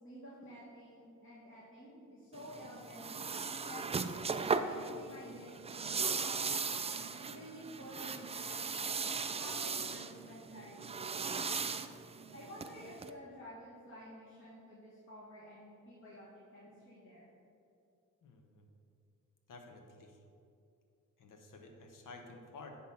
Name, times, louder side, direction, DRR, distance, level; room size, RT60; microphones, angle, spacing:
voice 1, 0.0-3.9 4.4-6.6 7.1-11.6 12.3-17.3, equal, 35° left, -7 dB, 1.7 m, -52 dB
sound 1, 2.3-13.1, right 5 dB, 20° right, 0.3 m, -38 dB
voice 2, 18.2-18.7 19.5-20.2 21.2-22.8, left 3 dB, 70° left, 3 dB, 1.2 m, -52 dB
9.8 x 3.9 x 5.7 m, 2.5 s
cardioid pair, 85°, 34 cm